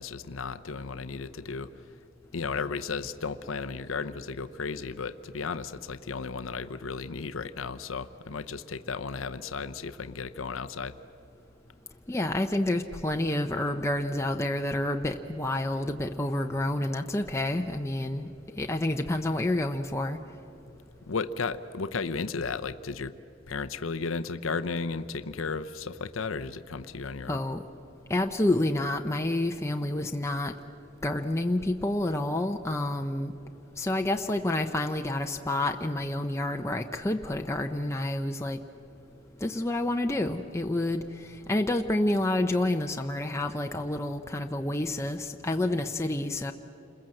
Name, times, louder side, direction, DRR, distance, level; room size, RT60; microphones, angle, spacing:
voice 1, 0.0-1.7 2.3-11.0 21.1-23.1 23.5-27.4, left 4 dB, 85° left, 11 dB, 0.7 m, -34 dB
voice 2, 12.1-18.3 18.6-20.2 27.3-27.6 28.1-30.5 31.0-33.3 33.8-38.6 39.4-46.5, left 1 dB, 15° left, 3 dB, 0.7 m, -29 dB
29.0 x 21.5 x 7.7 m, 2.8 s
head